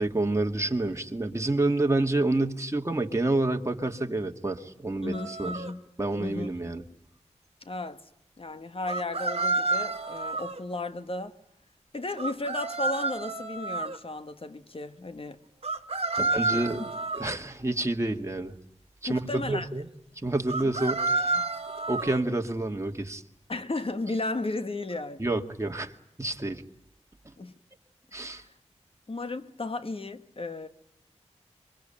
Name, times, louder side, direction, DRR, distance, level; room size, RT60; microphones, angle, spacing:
voice 1, 0.0-5.5 6.0-6.8 16.2-16.8 17.2-18.6 19.0-19.9 20.2-21.4 21.9-23.2 25.2-25.9 26.2-26.6 28.1-28.4, right 2 dB, 25° right, 2.1 m, -28 dB
voice 2, 5.0-5.8 6.2-6.5 7.6-8.0 8.4-11.4 11.9-15.4 16.1-16.6 19.1-19.7 20.6-20.7 21.3-21.5 23.5-25.3 27.4-27.5 28.1-28.4 29.1-30.7, left 2 dB, 50° left, 1.6 m, -34 dB
sound 1, 5.1-5.7 8.9-10.6 12.2-14.0 15.6-17.4 20.5-22.2, right 3 dB, 55° right, 1.6 m, -30 dB
27.0 x 23.5 x 8.9 m
wide cardioid pair, 75°, 12 cm